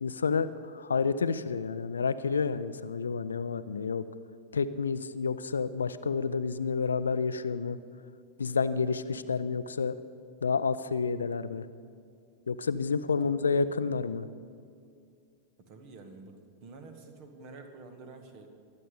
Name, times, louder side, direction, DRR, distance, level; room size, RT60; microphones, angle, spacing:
voice 1, 0.0-4.0 4.5-7.8 8.4-10.0 10.4-11.6 12.5-14.3, left 5 dB, 70° left, 13 dB, 0.5 m, -29 dB
voice 2, 13.2-13.6 15.6-18.5, right 3 dB, 40° right, 6 dB, 1.9 m, -49 dB
22.5 x 8.7 x 5.2 m, 2.3 s
figure-of-eight pair, 90°, 0 cm